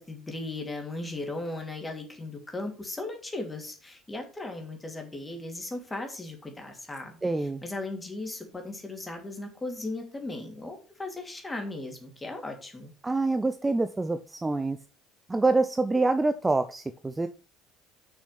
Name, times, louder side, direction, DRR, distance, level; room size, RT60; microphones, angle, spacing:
voice 1, 0.0-12.9, left 2 dB, 15° left, 3 dB, 2.9 m, -37 dB
voice 2, 7.2-7.6 13.0-14.8 15.3-17.3, right 3 dB, 15° right, 10 dB, 0.6 m, -26 dB
6.4 x 6.3 x 5.9 m, 0.36 s
figure-of-eight pair, 60°, 0 cm